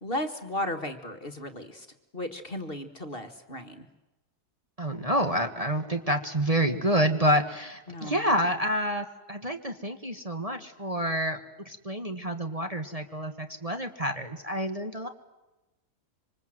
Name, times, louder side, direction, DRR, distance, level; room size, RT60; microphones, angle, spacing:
voice 1, 0.0-1.9 2.1-3.9 7.9-8.3, left 1 dB, 35° left, 7 dB, 1.8 m, -35 dB
voice 2, 4.8-11.4 11.6-15.1, equal, 25° right, 5 dB, 1.6 m, -28 dB
27.0 x 25.5 x 7.8 m, 1.0 s
omnidirectional pair, 1.7 m